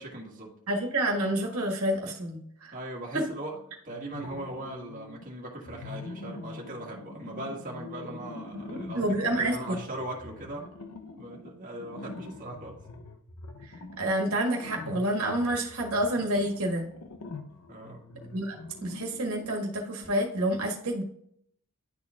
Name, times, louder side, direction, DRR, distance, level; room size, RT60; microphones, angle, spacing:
voice 1, 0.0-0.5 2.7-3.6 3.8-10.7 11.2-12.8 17.7-18.0, right 1 dB, 40° right, -3 dB, 1.7 m, -39 dB
voice 2, 0.7-2.7 3.1-3.2 8.5-9.8 14.0-16.9 18.3-18.6 18.8-21.0, right 1 dB, 80° right, 1 dB, 1.5 m, -28 dB
sound 1, 3.9-5.2 5.6-19.5, left 3 dB, 85° left, 0.7 m, -44 dB
11.0 x 4.3 x 2.4 m, 0.69 s
head